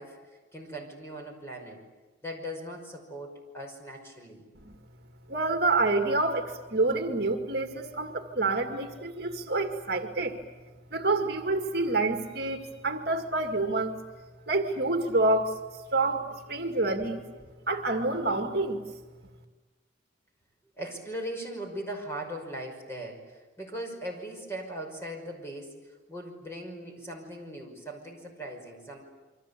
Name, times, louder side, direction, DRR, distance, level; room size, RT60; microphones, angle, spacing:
voice 1, 0.0-1.8 2.2-4.5 17.0-17.2 20.8-25.8 26.1-29.0, right 1 dB, 15° left, 2 dB, 5.5 m, -39 dB
voice 2, 5.3-10.4 10.9-14.0 14.5-15.6 15.9-17.2 17.7-18.8, right 2 dB, 55° right, 4 dB, 2.1 m, -27 dB
28.5 x 24.5 x 8.5 m, 1.2 s
head